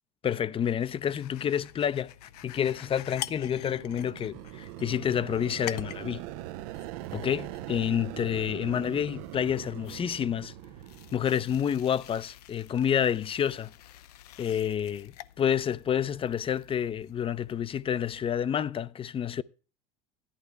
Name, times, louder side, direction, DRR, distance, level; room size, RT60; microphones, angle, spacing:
voice 1, 0.2-2.1 2.4-6.2 7.1-10.5 11.1-13.7 14.4-15.1 15.4-19.4, left 9 dB, 30° left, 0.5 m, -29 dB
sound 1, 0.6-18.5, left 14 dB, 85° left, 0.5 m, -47 dB
sound 2, 2.4-12.2, right 16 dB, 75° right, 0.6 m, -42 dB
16.0 x 11.0 x 3.4 m
supercardioid pair, 95°, 19 cm